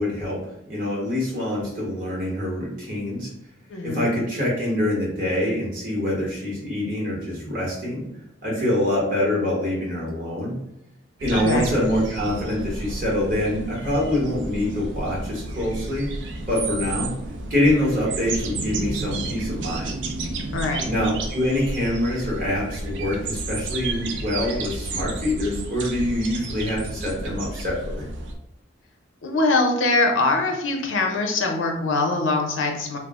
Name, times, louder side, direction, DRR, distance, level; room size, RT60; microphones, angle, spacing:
voice 1, 0.0-3.3 3.8-8.0 8.4-10.6 11.2-16.1 16.5-17.1 17.5-20.0 20.8-28.0, left 1 dB, 45° right, -5 dB, 1.1 m, -25 dB
voice 2, 3.7-4.1 11.3-11.7 20.5-20.9 29.2-33.0, left 3 dB, 90° left, 3 dB, 0.5 m, -23 dB
sound 1, 11.2-28.3, right 2 dB, 70° right, 0.4 m, -32 dB
2.3 x 2.0 x 3.5 m, 0.84 s
head